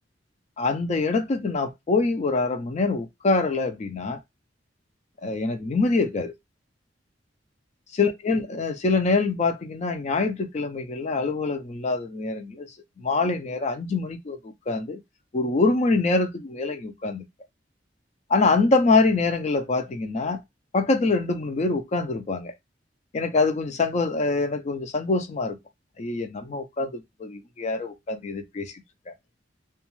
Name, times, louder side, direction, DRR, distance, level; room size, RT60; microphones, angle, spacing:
voice 1, 0.6-4.2 5.2-6.3 8.0-12.7 13.0-15.0 15.3-17.2 18.3-20.4 20.7-22.5 23.1-25.6 26.0-28.7 29.1-29.2, left 3 dB, 40° left, 0.4 m, -25 dB
2.5 x 2.2 x 3.0 m
head